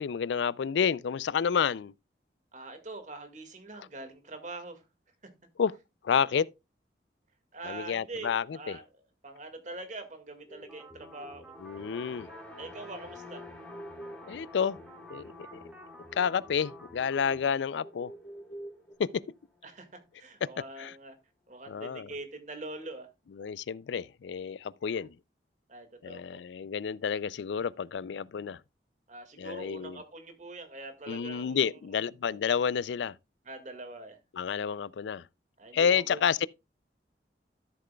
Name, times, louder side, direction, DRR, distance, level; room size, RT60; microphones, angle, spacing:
voice 1, 0.0-1.9 5.6-5.7 6.0-6.5 7.6-8.8 11.6-12.3 14.3-14.8 15.1-15.6 16.1-18.1 19.0-19.2 20.8-20.9 21.7-22.1 23.4-25.1 26.0-28.6 29.4-30.0 31.1-33.2 34.3-35.2 35.7-36.5, left 7 dB, 85° left, 0.4 m, -30 dB
voice 2, 2.5-4.9 5.2-5.3 7.5-8.8 9.2-11.5 12.6-13.4 19.6-21.2 21.5-23.1 25.7-26.4 29.1-31.7 33.5-34.2 35.6-36.2, right 2 dB, 45° right, 1.9 m, -43 dB
sound 1, 10.4-18.9, right 1 dB, 30° left, 2.4 m, -50 dB
sound 2, 10.7-17.5, left 1 dB, 10° right, 2.1 m, -50 dB
sound 3, 11.4-19.8, left 3 dB, 5° left, 3.6 m, -52 dB
13.5 x 7.6 x 2.3 m
head